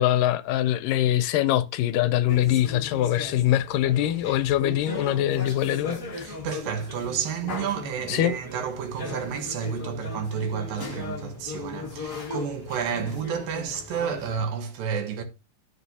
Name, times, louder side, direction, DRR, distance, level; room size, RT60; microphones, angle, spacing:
voice 1, 0.0-6.3 8.1-8.3, left 12 dB, 80° left, 2.1 m, -23 dB
sound 1, 2.3-14.4, left 3 dB, 60° left, 0.8 m, -38 dB
voice 2, 6.2-15.2, right 7 dB, 80° right, 3.0 m, -31 dB
12.5 x 6.5 x 2.7 m
omnidirectional pair, 4.0 m